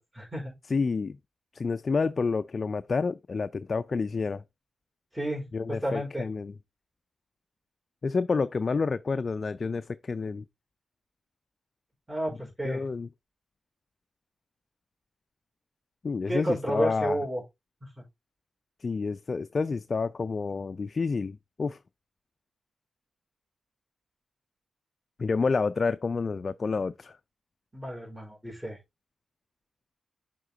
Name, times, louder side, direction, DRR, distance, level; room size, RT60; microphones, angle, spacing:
voice 1, 0.1-0.5 5.1-6.3 12.1-12.8 16.3-17.4 17.8-17.9 27.7-28.8, right 1 dB, 15° right, 4.2 m, -31 dB
voice 2, 0.7-1.2 1.5-4.4 5.5-6.5 8.0-10.4 12.6-13.1 16.0-17.2 18.8-21.8 25.2-27.2, left 4 dB, 50° left, 0.4 m, -29 dB
6.8 x 3.6 x 3.8 m
cardioid pair, 55°, 0 cm